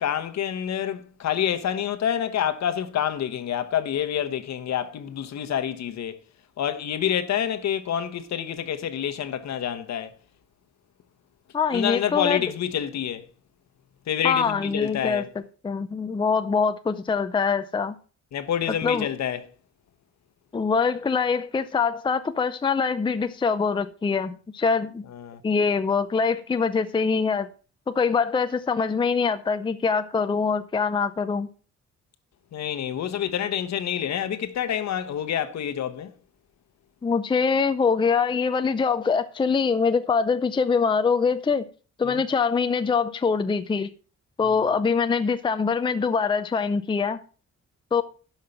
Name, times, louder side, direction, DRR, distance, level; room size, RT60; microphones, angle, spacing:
voice 1, 0.0-6.2 6.6-10.1 11.7-13.3 14.1-15.3 18.3-19.4 25.1-25.4 32.5-36.1 42.0-42.2 44.4-44.5, left 9 dB, 65° left, 1.2 m, -27 dB
voice 2, 11.5-12.4 14.2-15.2 15.6-18.0 18.8-19.1 20.5-25.0 25.4-27.5 27.9-31.5 37.0-41.6 42.0-43.9 44.4-47.2 47.9-48.0, left 5 dB, 15° left, 0.5 m, -24 dB
12.0 x 5.7 x 5.7 m
wide cardioid pair, 160°, 29 cm